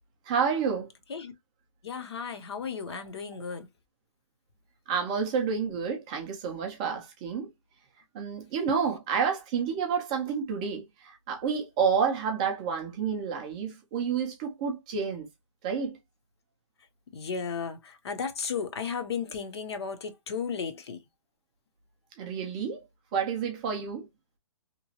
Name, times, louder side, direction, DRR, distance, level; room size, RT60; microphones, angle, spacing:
voice 1, 0.3-0.9 2.9-3.0 4.9-7.5 8.1-15.3 15.6-16.0 22.2-22.8 23.1-24.1, right 6 dB, 15° right, 0.4 m, -29 dB
voice 2, 1.8-3.7 17.1-21.0, left 6 dB, 50° left, 0.7 m, -34 dB
2.9 x 2.1 x 2.7 m
hypercardioid pair, 165°, 17 cm